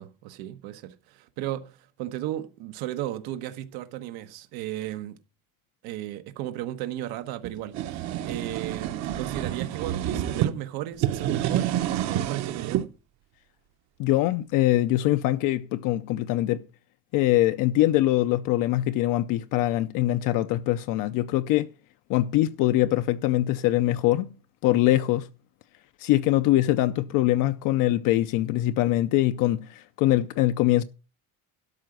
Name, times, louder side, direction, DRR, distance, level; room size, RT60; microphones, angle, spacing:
voice 1, 0.0-5.2 5.8-11.7 12.0-12.9, right 13 dB, 85° right, 1.2 m, -35 dB
sound 1, 7.4-10.5 10.9-12.9, right 12 dB, 50° right, 0.9 m, -28 dB
voice 2, 14.0-16.6 17.1-21.7 22.1-24.3 24.6-25.3 26.0-30.8, left 15 dB, 60° left, 0.6 m, -23 dB
12.5 x 4.9 x 7.8 m
cardioid pair, 180°, 37 cm